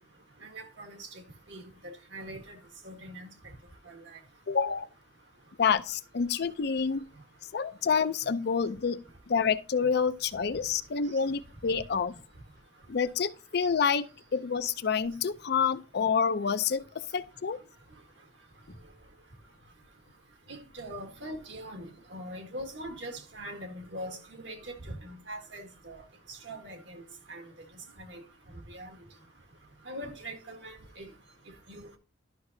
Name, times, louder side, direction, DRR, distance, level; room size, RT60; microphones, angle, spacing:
voice 1, 0.5-1.1 1.5-2.6 2.8-3.3 3.9-4.0 20.5-26.0 26.4-27.0 27.3-27.5 28.0-28.2 28.7-28.9 29.9-31.1 31.7-32.0, right 1 dB, 70° right, 1.7 m, -42 dB
voice 2, 4.5-4.9 5.6-7.0 7.5-12.2 12.9-14.1 14.3-17.6, left 6 dB, 55° left, 0.5 m, -28 dB
11.5 x 5.9 x 2.7 m
head